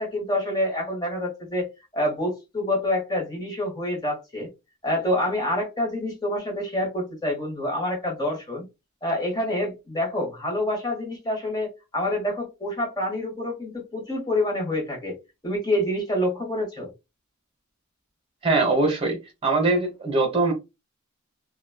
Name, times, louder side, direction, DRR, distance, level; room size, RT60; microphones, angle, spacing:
voice 1, 0.0-4.5 4.8-8.7 9.0-15.2 15.4-16.9, left 1 dB, 20° left, 1.1 m, -27 dB
voice 2, 18.4-20.5, right 3 dB, 25° right, 0.9 m, -22 dB
2.9 x 2.3 x 2.2 m
head